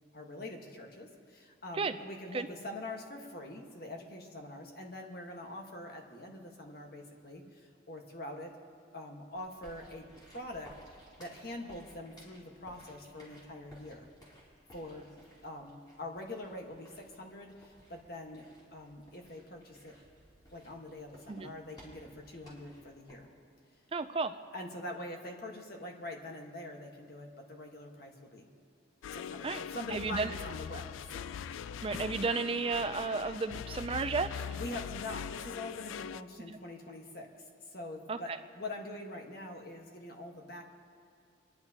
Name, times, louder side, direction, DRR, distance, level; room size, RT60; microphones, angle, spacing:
voice 1, 0.1-8.5 8.9-14.1 14.7-15.1 15.4-18.5 18.7-20.0 20.5-23.3 24.5-28.5 29.1-31.3 34.3-37.3 37.7-40.6, left 1 dB, 50° left, 2 dB, 1.4 m, -44 dB
sound 1, 9.3-23.1, equal, 20° left, 4.3 m, -59 dB
voice 2, 23.9-24.3 29.4-29.6 29.9-30.3 31.8-34.6 36.5-36.6 38.1-38.4, right 4 dB, 30° right, 10 dB, 0.3 m, -33 dB
sound 2, 29.0-36.2, left 8 dB, 85° left, 0.3 m, -41 dB
29.5 x 11.0 x 2.9 m, 2.4 s
head